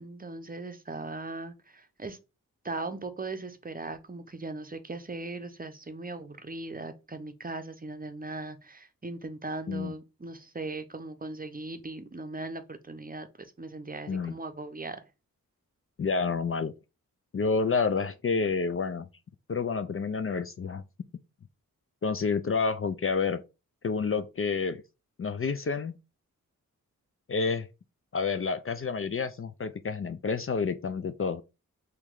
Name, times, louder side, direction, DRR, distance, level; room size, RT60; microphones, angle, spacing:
voice 1, 0.0-2.2 2.6-15.0, right 2 dB, 25° right, 0.7 m, -39 dB
voice 2, 16.0-16.7 17.3-19.1 19.5-20.8 22.0-23.4 23.8-24.8 25.2-26.0 27.3-27.7 28.1-31.4, left 5 dB, 40° left, 0.4 m, -29 dB
3.2 x 3.0 x 3.7 m
cardioid pair, 40°, 34 cm